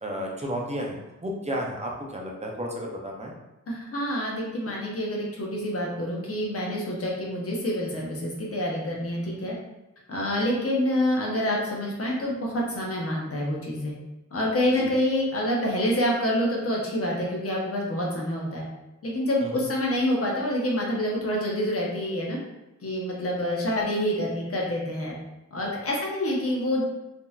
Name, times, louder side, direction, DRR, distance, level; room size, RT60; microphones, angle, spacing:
voice 1, 0.0-3.3 14.7-14.9 19.4-19.6, equal, 25° right, -1 dB, 0.5 m, -32 dB
voice 2, 3.7-9.5 10.1-13.9 14.3-18.6 19.0-22.4 22.8-25.2 25.5-26.8, left 1 dB, 50° left, -3 dB, 0.8 m, -27 dB
3.7 x 2.8 x 2.3 m, 0.98 s
wide cardioid pair, 155°, 29 cm